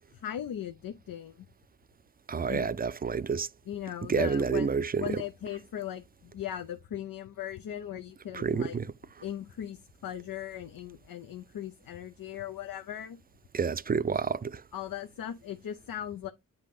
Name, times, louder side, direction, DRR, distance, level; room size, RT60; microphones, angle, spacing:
voice 1, 0.1-1.5 2.5-2.7 3.7-8.8 9.2-13.2 14.7-16.3, left 11 dB, 85° left, 0.7 m, -38 dB
voice 2, 2.3-3.5 4.1-5.2 8.3-8.9 13.5-14.6, right 5 dB, 30° right, 0.4 m, -29 dB
8.1 x 2.8 x 5.2 m
cardioid pair, 65°, 34 cm